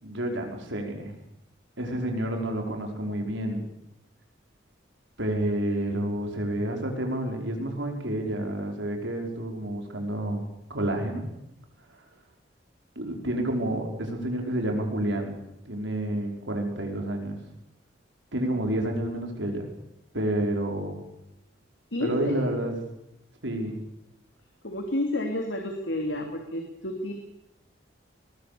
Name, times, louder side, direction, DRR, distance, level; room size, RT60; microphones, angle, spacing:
voice 1, 0.0-1.1 1.8-3.7 5.2-10.4 10.7-11.2 12.9-15.4 15.6-17.4 18.3-19.6 20.1-21.0 22.0-22.8 23.4-23.8, right 1 dB, 80° right, 2 dB, 5.1 m, -29 dB
voice 2, 21.9-22.5 24.6-27.1, left 1 dB, 75° left, 3 dB, 2.9 m, -30 dB
21.5 x 21.5 x 7.0 m, 0.81 s
head